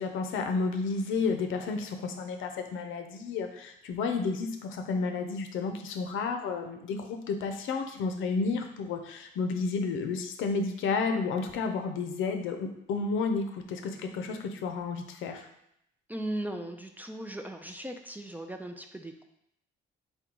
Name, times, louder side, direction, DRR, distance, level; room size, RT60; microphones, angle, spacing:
voice 1, 0.0-15.5, left 4 dB, 80° left, 5 dB, 0.5 m, -31 dB
voice 2, 16.1-19.2, right 1 dB, 10° right, 5 dB, 0.3 m, -38 dB
3.7 x 2.2 x 4.4 m, 0.77 s
cardioid pair, 90°, 20 cm